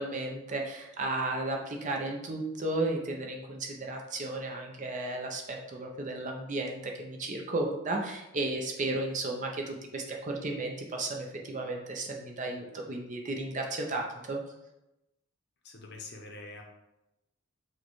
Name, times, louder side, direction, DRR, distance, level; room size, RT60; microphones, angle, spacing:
voice 1, 0.0-14.4, right 2 dB, 35° right, 1 dB, 0.5 m, -34 dB
voice 2, 15.6-16.6, left 3 dB, 50° left, 2 dB, 0.6 m, -45 dB
6.3 x 2.2 x 3.0 m, 0.93 s
head